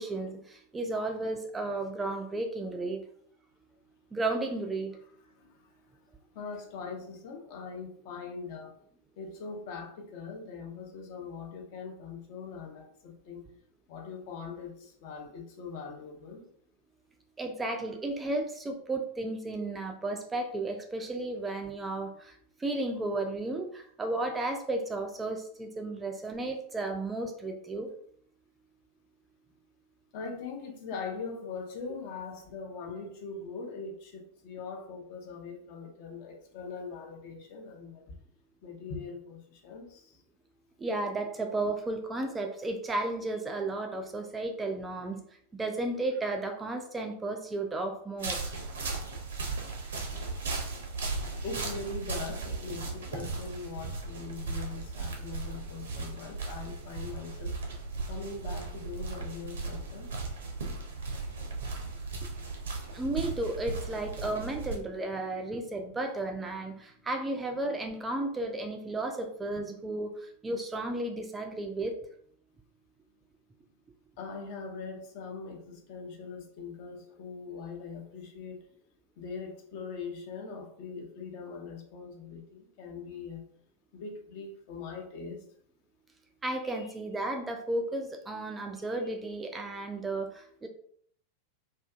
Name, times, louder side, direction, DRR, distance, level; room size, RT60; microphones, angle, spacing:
voice 1, 0.0-3.0 4.1-4.9 17.4-27.9 40.8-45.2 45.5-48.5 62.9-72.0 86.4-90.7, right 2 dB, 15° right, 4 dB, 0.3 m, -33 dB
voice 2, 5.4-5.8 6.3-8.7 9.2-13.4 13.9-16.4 30.1-38.1 38.6-40.2 51.4-57.6 58.1-60.1 74.2-78.6 79.2-83.4 83.9-85.4, left 5 dB, 45° left, 1 dB, 0.6 m, -41 dB
sound 1, 48.2-64.8, right 3 dB, 65° right, 0.6 m, -37 dB
2.5 x 2.4 x 2.3 m, 0.62 s
figure-of-eight pair, 90°, 0 cm